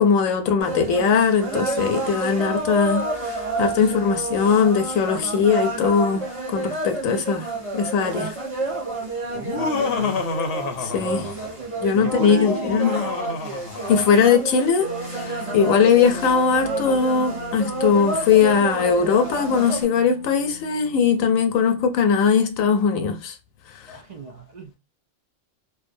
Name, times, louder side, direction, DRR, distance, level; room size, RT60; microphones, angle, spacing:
voice 1, 0.0-6.3 6.5-7.5 7.7-8.3 10.8-11.3 11.8-13.0 13.9-23.4 23.9-24.0, left 6 dB, 90° left, 1.0 m, -20 dB
sound 1, 0.6-19.8, right 2 dB, 30° right, 0.9 m, -30 dB
voice 2, 3.7-4.2 9.5-10.3 11.9-12.9 23.9-24.7, right 2 dB, 60° right, 0.4 m, -34 dB
Laughter, 9.4-11.5 12.0-14.3, left 5 dB, 60° left, 0.7 m, -28 dB
Wind instrument woodwind instrument, 14.8-21.7, equal, 85° right, 1.2 m, -39 dB
2.6 x 2.1 x 2.5 m
omnidirectional pair, 1.3 m